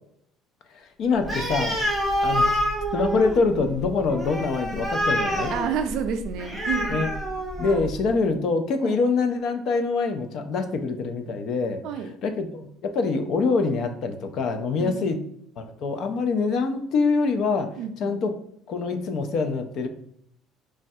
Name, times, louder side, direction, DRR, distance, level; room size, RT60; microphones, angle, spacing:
voice 1, 0.7-1.8 2.2-2.6 2.9-5.5 6.9-7.1 7.6-11.8 12.2-15.2 15.6-18.3 18.7-19.9, left 4 dB, 45° left, 7 dB, 0.3 m, -25 dB
Animal, 1.2-8.0, equal, ahead, 0.6 m, -27 dB
voice 2, 5.5-7.0 8.8-9.0 11.8-12.1 14.8-15.2 17.8-18.2, right 7 dB, 55° right, 7 dB, 0.3 m, -30 dB
3.1 x 2.2 x 2.7 m, 0.70 s
cardioid pair, 165°, 0 cm